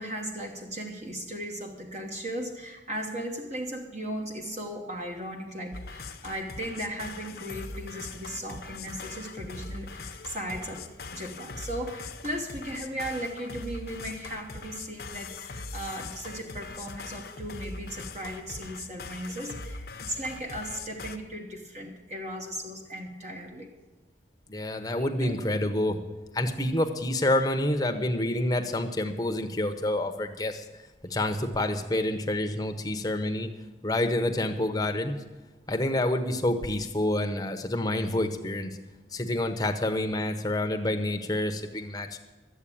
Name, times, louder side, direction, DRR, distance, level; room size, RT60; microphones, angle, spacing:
voice 1, 0.0-10.8 11.1-23.7 24.9-25.4, right 1 dB, 40° right, 1 dB, 1.2 m, -37 dB
sound 1, 5.7-21.2, left 3 dB, 55° left, 0.8 m, -41 dB
voice 2, 24.5-26.0 26.3-30.6 31.0-33.5 33.8-35.2 35.7-38.7 39.1-42.2, left 1 dB, 20° left, 6 dB, 0.9 m, -28 dB
12.5 x 8.1 x 8.5 m, 1.2 s
head